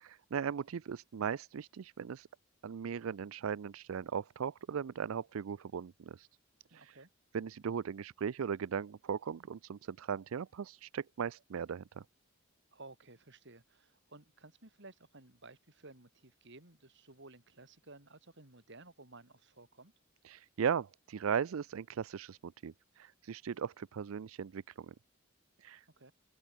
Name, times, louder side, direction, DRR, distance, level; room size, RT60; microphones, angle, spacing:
voice 1, 0.3-2.3 2.6-6.3 6.7-7.0 7.3-12.0 20.2-24.9 25.6-25.8, right 7 dB, 80° right, 0.4 m, -38 dB
voice 2, 6.7-7.1 12.7-19.9 26.0-26.1, right 2 dB, 60° right, 4.3 m, -56 dB
head